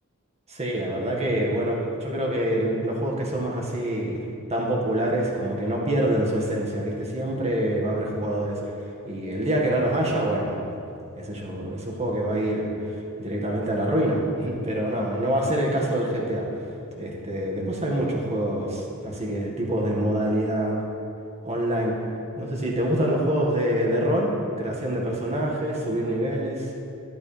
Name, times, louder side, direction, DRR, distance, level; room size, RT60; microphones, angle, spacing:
voice 1, 0.5-4.2 4.5-8.6 9.1-10.7 11.2-16.6 17.0-20.8 21.4-22.0 22.4-26.7, right 1 dB, 30° right, -2 dB, 1.8 m, -26 dB
12.0 x 11.5 x 3.4 m, 2.5 s
head